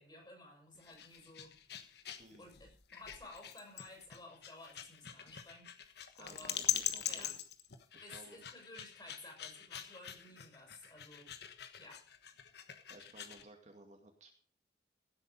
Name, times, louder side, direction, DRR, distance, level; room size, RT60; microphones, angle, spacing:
voice 1, 0.0-1.6 2.4-5.7 6.1-6.6 7.1-7.3 8.0-11.3 11.8-12.0, left 2 dB, 25° left, 0 dB, 6.2 m, -54 dB
sound 1, 0.8-13.4, left 10 dB, 65° left, 1.4 m, -43 dB
voice 2, 6.2-7.4 7.9-8.4 12.9-14.3, right 2 dB, 40° right, 3 dB, 2.1 m, -57 dB
16.0 x 8.4 x 5.3 m, 0.44 s
head